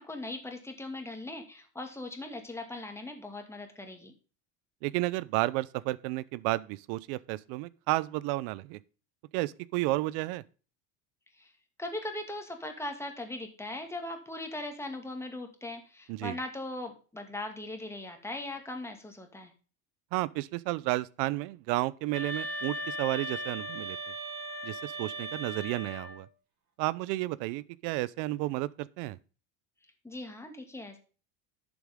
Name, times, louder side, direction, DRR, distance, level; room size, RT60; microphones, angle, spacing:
voice 1, 0.0-4.1 11.4-11.5 11.8-19.5 30.0-31.0, left 2 dB, 5° left, 2.4 m, -39 dB
voice 2, 4.8-8.8 9.3-10.4 16.1-16.4 20.1-24.0 24.6-26.3 26.8-29.2, right 19 dB, 70° right, 0.8 m, -32 dB
sound 1, 22.1-26.3, equal, 55° right, 6.0 m, -38 dB
11.0 x 7.2 x 3.6 m
supercardioid pair, 125°, 40 cm